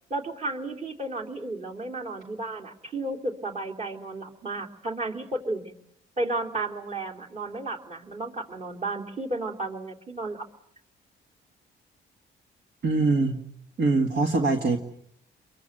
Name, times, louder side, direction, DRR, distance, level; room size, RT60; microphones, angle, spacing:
voice 1, 0.1-5.7 6.2-10.5, right 2 dB, 35° right, 1 dB, 3.4 m, -33 dB
voice 2, 12.8-13.4 13.8-14.8, right 3 dB, 60° right, 4 dB, 2.0 m, -23 dB
24.5 x 22.5 x 7.9 m, 0.70 s
cardioid pair, 90°, 20 cm